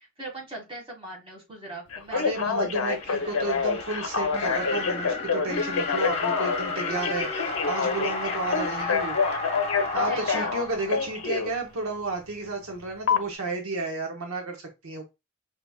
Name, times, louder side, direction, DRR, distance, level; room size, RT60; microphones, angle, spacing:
voice 1, 0.0-3.5 10.0-10.6, right 1 dB, 25° right, -2 dB, 1.8 m, -39 dB
Telephone, 1.9-11.5 13.1-13.2, left 5 dB, 70° left, 0.6 m, -27 dB
voice 2, 2.1-9.2 9.9-15.0, right 3 dB, 75° right, 3 dB, 0.8 m, -32 dB
sound 1, 2.7-11.6, left 3 dB, 30° left, 1.0 m, -33 dB
4.8 x 2.8 x 2.3 m, 0.24 s
head